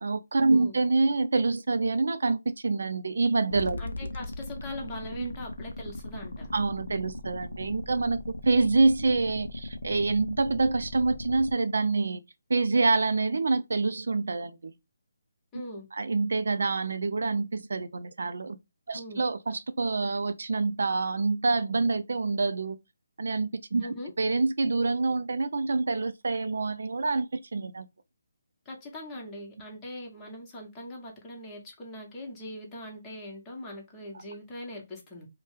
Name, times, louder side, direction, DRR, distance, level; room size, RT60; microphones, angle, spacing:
voice 1, 0.0-3.8 5.2-5.3 6.5-8.2 8.5-12.2 12.5-14.7 15.9-18.6 18.9-22.8 23.2-23.9 24.2-27.9, right 3 dB, 70° right, 0.3 m, -26 dB
sound 1, 3.5-11.5, left 1 dB, 90° left, 0.4 m, -38 dB
voice 2, 3.8-6.5 15.5-15.9 18.9-19.2 23.8-24.1 28.6-35.3, left 1 dB, 15° left, 1.1 m, -41 dB
2.8 x 2.1 x 3.2 m
figure-of-eight pair, 155°, 0 cm